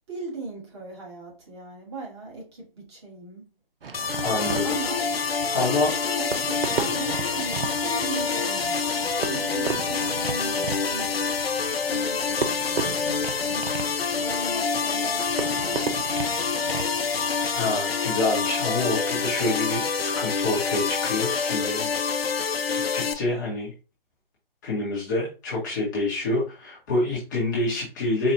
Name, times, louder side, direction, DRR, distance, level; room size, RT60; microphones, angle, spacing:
voice 1, 0.0-3.5 4.3-5.0 5.5-11.2 11.7-16.7, right 3 dB, 30° right, 1.5 m, -38 dB
Fireworks, 3.8-17.7, right 4 dB, 70° right, 0.7 m, -35 dB
sound 1, 3.9-23.1, left 5 dB, 85° left, 0.6 m, -27 dB
voice 2, 4.2-4.6 5.5-5.9 17.5-21.9 22.7-23.7 24.6-28.3, left 2 dB, 20° left, 1.0 m, -27 dB
4.5 x 2.4 x 2.7 m
figure-of-eight pair, 155°, 29 cm